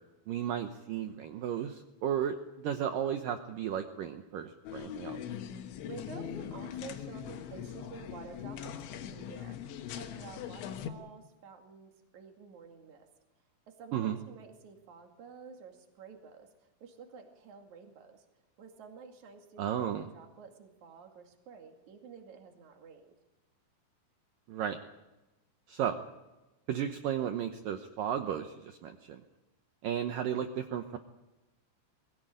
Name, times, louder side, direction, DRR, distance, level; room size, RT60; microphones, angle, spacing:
voice 1, 0.3-5.2 13.9-14.2 19.6-20.1 24.5-24.8 25.7-26.0 26.7-29.2 29.8-31.0, right 9 dB, 80° right, 7 dB, 2.0 m, -34 dB
sound 1, 4.7-10.9, left 9 dB, 85° left, 3.7 m, -41 dB
voice 2, 5.8-9.6 10.0-13.1 13.8-18.2 18.6-23.1, right 6 dB, 45° right, 4 dB, 3.3 m, -50 dB
22.0 x 18.0 x 8.9 m, 1.0 s
omnidirectional pair, 5.3 m